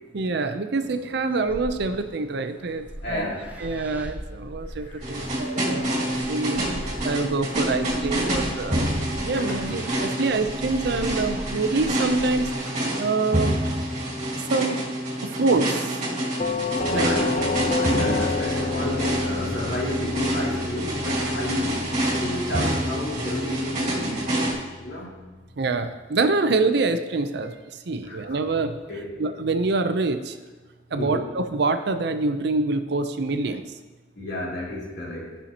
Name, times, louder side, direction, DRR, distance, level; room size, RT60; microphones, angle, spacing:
voice 1, 0.1-3.3 3.6-6.6 7.0-8.9 9.2-12.5 13.0-13.7 14.5-14.8 15.2-15.9 16.9-17.1 17.9-18.1 25.6-27.5 27.9-28.8 29.2-30.4 30.9-33.7, right 3 dB, 65° right, 9 dB, 0.6 m, -25 dB
sound 1, 0.7-12.5, right 1 dB, 10° right, 0.6 m, -40 dB
voice 2, 3.0-3.8 4.7-6.9 9.4-9.9 15.2-15.3 16.9-17.5 17.8-24.5 24.8-25.1 28.0-28.4 28.9-29.2 30.9-31.3 34.2-35.3, left 1 dB, 65° left, -5 dB, 2.6 m, -32 dB
sound 2, 5.0-24.5, right 1 dB, 40° right, 1.9 m, -27 dB
Doorbell, 16.4-25.2, left 4 dB, 40° left, 0.5 m, -31 dB
14.0 x 5.6 x 2.9 m, 1.2 s
head